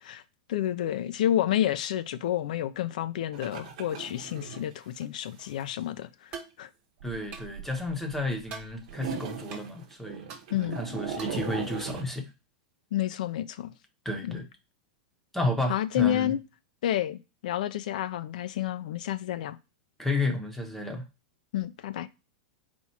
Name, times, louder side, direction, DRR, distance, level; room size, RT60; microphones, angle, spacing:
voice 1, 0.5-6.3 6.6-6.7 10.5-10.8 12.9-13.7 14.2-14.4 15.7-16.4 16.8-19.6 21.5-22.1, left 12 dB, 75° left, 0.4 m, -29 dB
sound 1, 3.3-4.7 5.0-5.1 5.4-5.5 7.0-8.3 8.6-12.0, right 7 dB, 65° right, 0.9 m, -38 dB
sound 2, 6.3-6.6 7.3-7.5 8.5-8.7 9.5-9.6 10.3-10.4 11.2-11.4, right 5 dB, 35° right, 1.2 m, -41 dB
voice 2, 7.0-10.3 10.5-12.3 14.0-14.4 15.3-16.3 20.0-21.0, left 2 dB, 5° left, 0.8 m, -32 dB
4.3 x 2.3 x 4.1 m
supercardioid pair, 135°, 4 cm